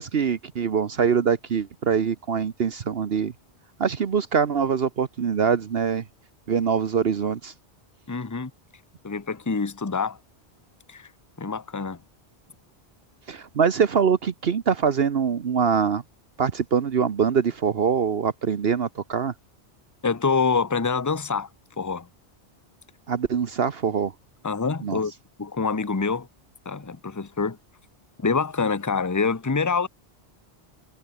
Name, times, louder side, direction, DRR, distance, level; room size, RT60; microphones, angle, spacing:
voice 1, 0.0-3.3 3.8-6.0 6.5-7.5 13.3-16.0 16.4-19.3 23.1-24.1 24.8-25.0, right 6 dB, 65° right, 1.2 m, -23 dB
voice 2, 8.1-8.5 9.0-10.2 10.9-11.1 11.4-12.0 20.0-21.5 21.8-22.1 24.4-25.1 25.4-26.3 26.6-27.6 28.2-29.9, left 4 dB, 20° left, 0.9 m, -26 dB
omnidirectional pair, 1.1 m